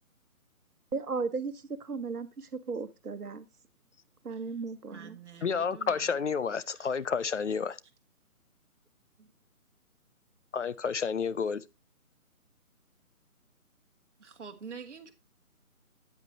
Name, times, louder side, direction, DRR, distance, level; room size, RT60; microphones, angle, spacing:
voice 1, 0.9-3.4 4.2-5.2, right 4 dB, 85° right, 1.2 m, -35 dB
voice 2, 4.9-6.2 6.7-6.9 9.2-9.3 14.2-15.1, right 6 dB, 50° right, 1.6 m, -47 dB
voice 3, 5.4-7.8 10.5-11.6, left 6 dB, 55° left, 0.6 m, -30 dB
9.1 x 8.2 x 2.8 m
figure-of-eight pair, 160°, 44 cm